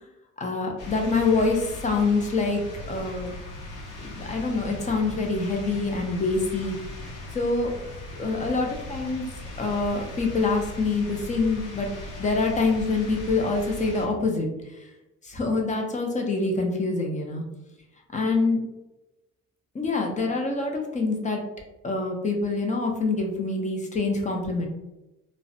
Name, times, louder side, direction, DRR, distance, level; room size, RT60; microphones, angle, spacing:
voice 1, 0.4-2.6 2.9-3.3 4.0-6.8 7.3-7.7 8.2-9.2 9.6-11.9 12.2-14.5 14.8-14.9 15.2-17.4 18.1-18.6 19.7-21.4 21.8-24.7, left 3 dB, 25° left, 2 dB, 0.5 m, -25 dB
sound 1, 0.8-14.1, left 2 dB, 90° left, 0.7 m, -39 dB
2.5 x 2.0 x 2.6 m, 0.97 s
cardioid pair, 90°, 30 cm